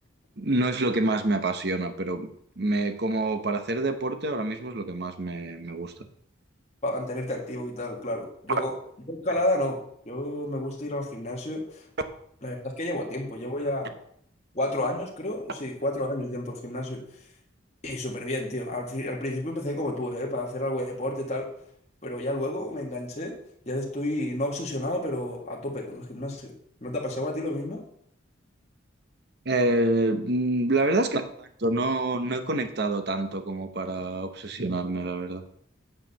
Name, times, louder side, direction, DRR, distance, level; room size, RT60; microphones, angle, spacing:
voice 1, 0.4-5.9 29.4-35.4, right 2 dB, 55° right, 8 dB, 1.0 m, -27 dB
voice 2, 6.8-8.7 9.1-9.8 10.1-11.8 12.4-13.9 14.5-17.0 17.8-21.5 22.0-23.3 23.7-26.5 26.8-27.8, left 1 dB, 35° left, -2 dB, 1.9 m, -30 dB
9.0 x 5.0 x 7.0 m, 0.66 s
head